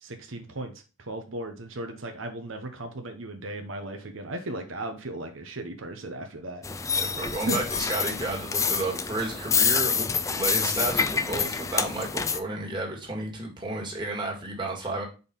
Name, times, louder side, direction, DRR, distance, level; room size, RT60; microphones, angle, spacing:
voice 1, 0.0-0.7 1.1-7.6, right 2 dB, 80° right, 5 dB, 1.0 m, -36 dB
sound 1, 6.6-12.4, left 5 dB, 15° left, 0.4 m, -27 dB
voice 2, 7.0-15.0, right 2 dB, 25° right, -1 dB, 1.9 m, -32 dB
5.4 x 4.4 x 5.3 m, 0.32 s
head